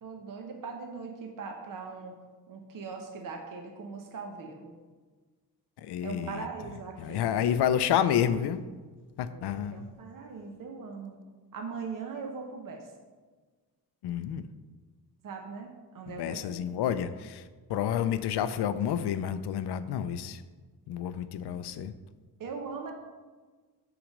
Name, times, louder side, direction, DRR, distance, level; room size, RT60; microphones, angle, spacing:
voice 1, 0.0-2.1 2.5-4.7 6.0-7.3 9.3-11.2 11.5-12.9 15.2-16.6 22.4-22.9, right 5 dB, 55° right, 2 dB, 1.0 m, -40 dB
voice 2, 5.8-6.5 7.0-8.6 9.2-9.9 14.0-14.4 16.1-20.4 20.9-21.9, left 9 dB, 85° left, 12 dB, 0.5 m, -29 dB
6.0 x 4.9 x 6.4 m, 1.4 s
cardioid pair, 110°, 39 cm